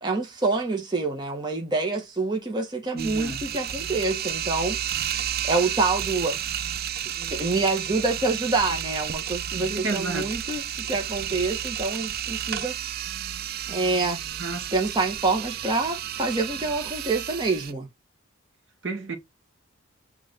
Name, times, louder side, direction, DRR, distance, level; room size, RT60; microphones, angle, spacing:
voice 1, 0.0-4.8 5.4-6.4 7.1-12.7 13.7-14.2 14.7-17.9, right 3 dB, 20° right, 1.3 m, -26 dB
voice 2, 2.9-3.4 9.5-10.3 14.4-14.7 18.8-19.2, right 3 dB, 65° right, 1.7 m, -31 dB
sound 1, 3.0-17.7, right 10 dB, 50° right, 0.4 m, -32 dB
6.1 x 3.3 x 5.1 m
head